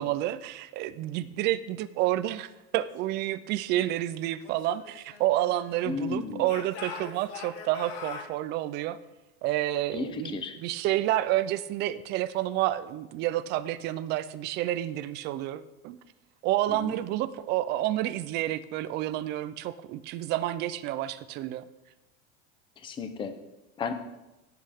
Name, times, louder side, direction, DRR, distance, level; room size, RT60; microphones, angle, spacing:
voice 1, 0.0-9.0 9.4-16.0 16.4-21.6, right 14 dB, 30° right, 14 dB, 0.4 m, -29 dB
Speech / Shout, 4.4-6.0 6.4-8.3, left 5 dB, 70° left, 1.7 m, -42 dB
voice 2, 5.9-6.5 9.9-10.6 16.7-16.9 22.8-23.3 23.8-23.9, left 5 dB, 15° left, 8 dB, 0.6 m, -34 dB
18.5 x 7.7 x 3.5 m, 0.99 s
cardioid pair, 170°, 33 cm